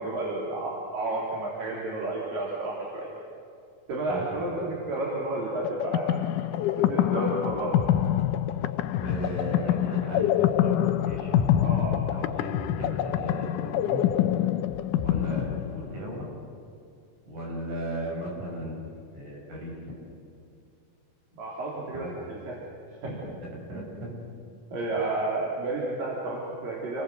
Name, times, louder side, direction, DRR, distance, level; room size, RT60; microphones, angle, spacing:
voice 1, 0.0-3.1 3.9-6.1 6.8-7.8 11.6-12.0 21.4-22.6 23.0-23.3 23.7-23.8 24.7-27.0, right 2 dB, 75° right, -4 dB, 5.2 m, -31 dB
sound 1, 5.6-16.2, left 11 dB, 75° left, 2.2 m, -26 dB
voice 2, 9.0-11.5 11.8-14.0 15.0-16.3 17.3-19.8 21.9-22.1 23.0-24.1, right 1 dB, 60° right, -2 dB, 8.5 m, -36 dB
28.5 x 22.0 x 8.0 m, 2.5 s
omnidirectional pair, 3.9 m